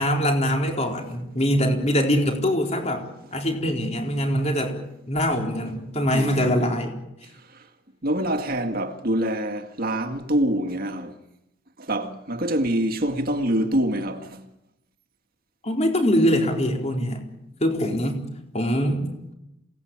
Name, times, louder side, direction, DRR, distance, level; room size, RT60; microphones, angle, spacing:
voice 1, 0.0-3.0 3.3-4.8 5.1-7.0 15.6-17.2 17.6-18.2 18.5-19.1, equal, 30° left, 4.1 m, -23 dB
voice 2, 6.1-6.6 8.0-11.1 11.8-14.4, right 1 dB, 45° right, 2.0 m, -25 dB
27.5 x 19.0 x 8.9 m
head